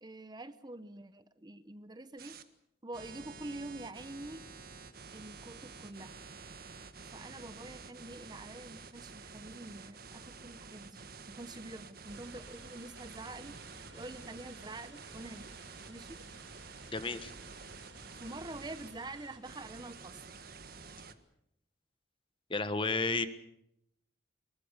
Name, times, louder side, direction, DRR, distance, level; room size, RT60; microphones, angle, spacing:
voice 1, 0.0-2.4 2.8-4.4 5.1-6.1 7.1-13.6 13.9-15.6 15.9-16.2 18.2-20.2, right 2 dB, 20° right, 12 dB, 0.8 m, -46 dB
sound 1, 2.2-2.4 2.9-18.9 19.4-21.1, right 4 dB, 50° right, 1.6 m, -50 dB
sound 2, 12.1-19.4, right 3 dB, 75° right, 6.2 m, -54 dB
voice 2, 16.9-17.3 22.5-23.3, left 3 dB, 25° left, 11 dB, 1.4 m, -32 dB
24.5 x 22.0 x 6.7 m, 0.76 s
head